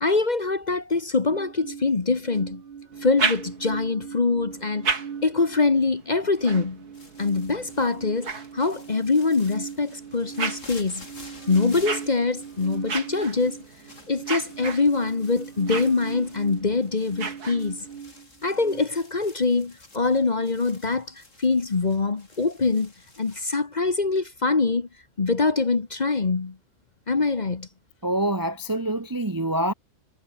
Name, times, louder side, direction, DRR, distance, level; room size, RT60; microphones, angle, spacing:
voice 1, 0.0-2.6 3.0-4.9 5.2-6.8 7.2-11.1 11.5-13.6 14.1-17.8 18.4-22.9 23.2-24.9 25.2-26.6 27.1-27.7, left 4 dB, 30° left, 1.1 m, -24 dB
sound 1, 1.3-18.8, right 7 dB, 40° right, 1.0 m, -40 dB
sound 2, 2.9-3.9 4.5-9.1 9.7-18.0, right 4 dB, 80° right, 3.2 m, -35 dB
sound 3, 6.9-23.5, left 2 dB, 55° left, 5.3 m, -50 dB
voice 2, 28.0-29.7, right 1 dB, 20° right, 0.7 m, -25 dB
omnidirectional pair, 1.6 m